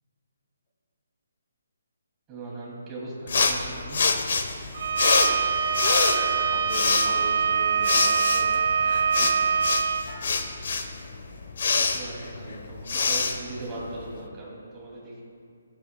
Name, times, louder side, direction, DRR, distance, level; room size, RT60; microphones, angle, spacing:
voice 1, 2.3-4.0 9.1-9.3 11.7-15.2, right 2 dB, 15° right, -5 dB, 2.4 m, -39 dB
sound 1, 3.3-14.2, left 4 dB, 60° left, 1.0 m, -26 dB
Bowed string instrument, 4.7-10.1, right 6 dB, 55° right, 0.7 m, -24 dB
voice 2, 5.7-8.5 10.0-10.4, left 1 dB, 30° left, -3 dB, 2.1 m, -39 dB
21.0 x 8.8 x 2.2 m, 2.4 s
hypercardioid pair, 165°, 0 cm